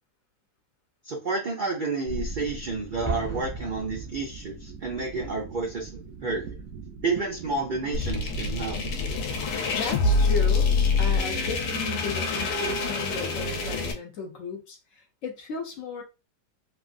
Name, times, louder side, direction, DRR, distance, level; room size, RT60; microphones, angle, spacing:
voice 1, 1.1-6.5 7.0-8.8, right 3 dB, 90° right, 0 dB, 0.4 m, -30 dB
sound 1, 2.0-10.9, right 3 dB, 65° right, 0.8 m, -41 dB
Explosion, 3.0-4.8, right 2 dB, 15° left, 0.6 m, -36 dB
sound 2, 7.9-13.9, left 4 dB, 85° left, 1.4 m, -25 dB
voice 2, 9.4-10.7 11.0-16.0, left 4 dB, 60° left, 3 dB, 1.0 m, -35 dB
3.2 x 2.5 x 2.4 m, 0.28 s
omnidirectional pair, 1.8 m